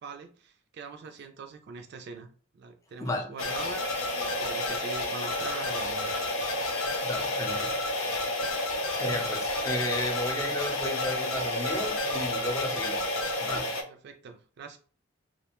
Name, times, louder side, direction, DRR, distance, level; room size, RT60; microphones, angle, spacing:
voice 1, 0.0-2.3 2.5-3.8 4.1-6.2 13.9-14.8, right 5 dB, 55° right, 0.3 m, -43 dB
voice 2, 3.0-3.3 7.0-7.8 8.1-8.5 8.9-13.1 13.4-13.8, left 1 dB, 15° left, 0.4 m, -34 dB
sound 1, 3.4-13.8, left 2 dB, 90° left, 0.5 m, -30 dB
2.5 x 2.1 x 2.9 m
head